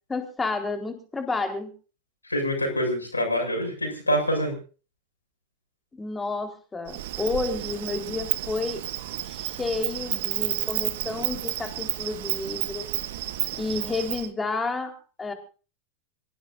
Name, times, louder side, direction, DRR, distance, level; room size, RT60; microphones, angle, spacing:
voice 1, 0.1-1.7 5.9-8.8 9.2-12.9 13.5-15.3, left 3 dB, 15° left, 5 dB, 4.2 m, -31 dB
voice 2, 2.2-4.5, equal, 85° left, 3 dB, 7.0 m, -26 dB
Insect, 6.9-14.3, right 15 dB, 55° right, 1.7 m, -31 dB
27.0 x 16.0 x 2.7 m, 0.38 s
figure-of-eight pair, 90°, 0 cm